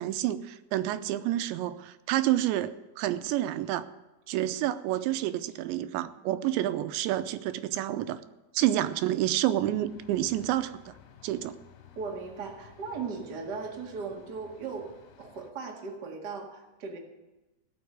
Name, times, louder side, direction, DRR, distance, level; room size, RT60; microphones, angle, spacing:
voice 1, 0.0-3.9 4.3-8.2 8.5-10.9 11.2-11.6, right 13 dB, 85° right, 12 dB, 3.0 m, -29 dB
sound 1, 9.6-15.5, left 8 dB, 70° left, 3.3 m, -55 dB
voice 2, 11.9-14.9 15.2-17.0, right 5 dB, 50° right, 1 dB, 1.2 m, -37 dB
17.0 x 6.2 x 9.4 m, 1.0 s
omnidirectional pair, 5.1 m